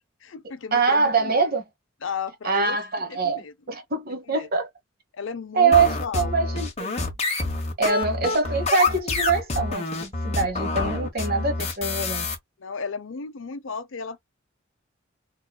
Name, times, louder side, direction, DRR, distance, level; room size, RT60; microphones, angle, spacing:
voice 1, 0.2-1.3 2.0-2.8 3.1-3.5 4.3-4.5 5.1-6.6 7.8-8.0 12.6-14.2, left 5 dB, 80° left, 0.6 m, -34 dB
voice 2, 0.7-1.6 2.4-4.7 5.5-7.1 7.8-12.3, right 4 dB, 50° right, 1.2 m, -24 dB
sound 1, 5.7-12.3, left 3 dB, 35° left, 1.3 m, -27 dB
3.8 x 3.0 x 2.3 m
head